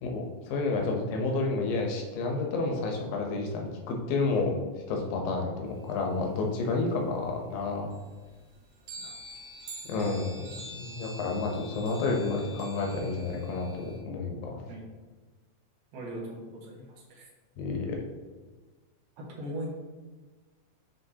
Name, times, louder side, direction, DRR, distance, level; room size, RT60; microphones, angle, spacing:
voice 1, 0.0-4.5 4.9-7.9 9.9-10.4 10.8-14.6 17.6-18.0, left 3 dB, 75° left, 1 dB, 2.5 m, -30 dB
sound 1, 5.7-7.2 7.5-7.6 7.9-14.0, right 1 dB, 70° right, 2.0 m, -46 dB
voice 2, 15.9-16.8 17.1-17.3 19.4-19.7, right 1 dB, 90° right, -4 dB, 3.3 m, -39 dB
9.6 x 3.6 x 2.8 m, 1.3 s
omnidirectional pair, 4.3 m